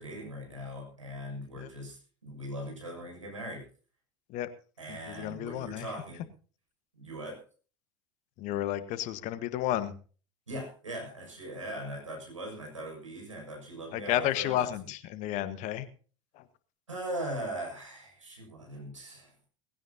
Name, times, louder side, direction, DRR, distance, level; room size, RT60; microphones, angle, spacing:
voice 1, 0.0-3.6 4.8-6.2 6.9-7.4 10.5-14.7 16.9-19.3, right 1 dB, 85° right, 0 dB, 6.6 m, -40 dB
voice 2, 4.9-5.9 8.4-9.9 13.9-15.9 16.3-16.4, left 13 dB, 50° left, 13 dB, 1.4 m, -32 dB
19.5 x 16.0 x 2.8 m, 0.38 s
figure-of-eight pair, 75°, 16 cm